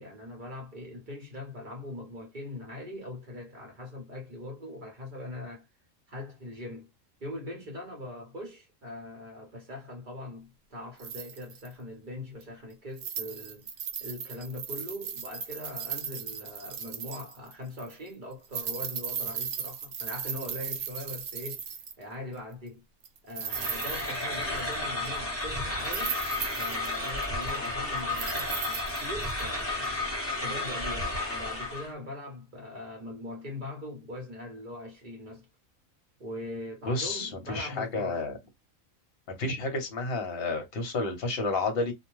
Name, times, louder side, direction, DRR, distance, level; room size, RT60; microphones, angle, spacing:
voice 1, 0.0-5.7 6.1-6.9 7.2-13.7 14.0-21.7 22.0-22.8 23.2-26.2 26.6-30.0 30.4-35.5 36.2-38.2, left 1 dB, 40° right, 0.9 m, -41 dB
sound 1, 11.0-11.7 12.4-12.5 13.0-17.5 17.8-17.9 18.4-22.0 23.0-24.7 25.1-25.2 25.8-27.7 28.1-29.4 29.8-29.9, right 7 dB, 70° right, 0.9 m, -37 dB
sound 2, 23.5-31.9, left 2 dB, 10° left, 1.0 m, -32 dB
voice 2, 36.9-38.3 39.4-41.9, left 3 dB, 50° left, 0.9 m, -30 dB
2.5 x 2.1 x 3.0 m
omnidirectional pair, 1.5 m